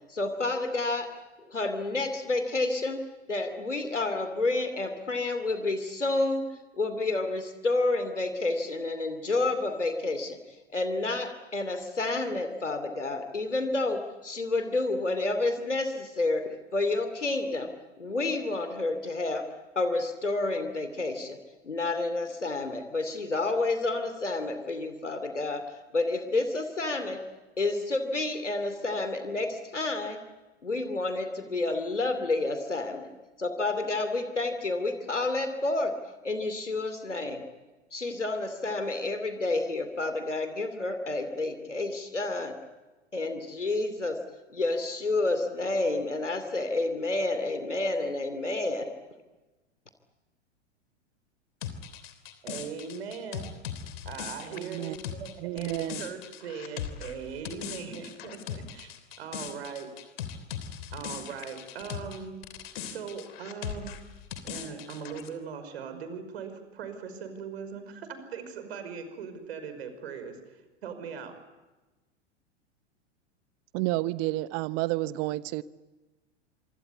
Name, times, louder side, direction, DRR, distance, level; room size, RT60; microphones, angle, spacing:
voice 1, 0.1-1.1 1.5-3.0 3.3-6.5 6.8-10.4 10.7-17.7 18.0-19.5 19.8-21.4 21.6-25.6 25.9-27.2 27.6-30.2 30.6-33.1 33.4-35.9 36.2-37.4 37.9-42.6 43.1-44.2 44.5-48.9, left 2 dB, 85° left, 8 dB, 2.7 m, -29 dB
sound 1, 51.6-62.2 62.4-65.3, left 8 dB, 55° left, 3.2 m, -39 dB
voice 2, 52.4-53.5 54.1-58.9 59.2-59.9 60.9-62.4 62.8-64.0 64.4-71.4, right 6 dB, 60° right, 9 dB, 5.4 m, -40 dB
voice 3, 54.5-55.0 55.4-56.0 73.7-75.6, right 18 dB, 40° right, 17 dB, 1.0 m, -30 dB
27.0 x 24.5 x 8.4 m, 1.1 s
figure-of-eight pair, 95°, 35 cm